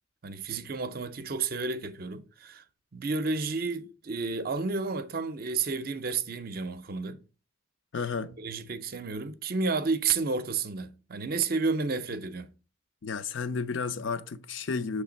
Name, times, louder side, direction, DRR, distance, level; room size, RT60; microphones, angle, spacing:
voice 1, 0.2-2.6 2.9-7.2 8.4-12.5, right 4 dB, 45° right, 0.5 m, -31 dB
voice 2, 7.9-8.4 13.0-15.0, left 5 dB, 65° left, 0.5 m, -32 dB
6.7 x 3.2 x 5.0 m
head